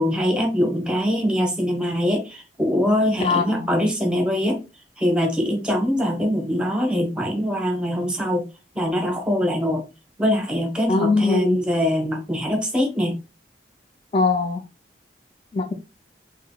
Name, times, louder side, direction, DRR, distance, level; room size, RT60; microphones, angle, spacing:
voice 1, 0.0-4.6 5.0-8.5 8.7-9.8 10.2-13.2, equal, 5° right, 0.9 m, -23 dB
voice 2, 3.2-3.7 10.9-11.6 14.1-14.6 15.5-15.7, left 4 dB, 35° left, 0.3 m, -21 dB
3.7 x 3.6 x 2.2 m
head